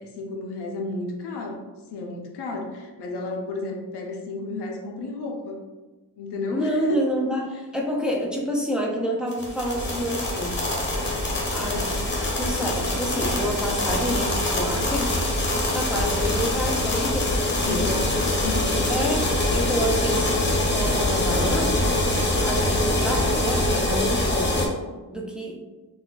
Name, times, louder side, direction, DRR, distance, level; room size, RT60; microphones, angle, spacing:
voice 1, 0.0-5.6 6.2-7.0 7.3-7.4 17.6-19.2, left 2 dB, 85° left, 1 dB, 0.7 m, -32 dB
voice 2, 6.5-10.7 11.5-11.9 12.4-15.2 15.7-17.9 18.9-22.0 22.4-24.8 25.1-25.6, equal, ahead, -1 dB, 0.3 m, -28 dB
sound 1, 9.3-24.7, left 1 dB, 30° left, 0.7 m, -24 dB
4.0 x 2.4 x 2.3 m, 1.2 s
wide cardioid pair, 165°, 39 cm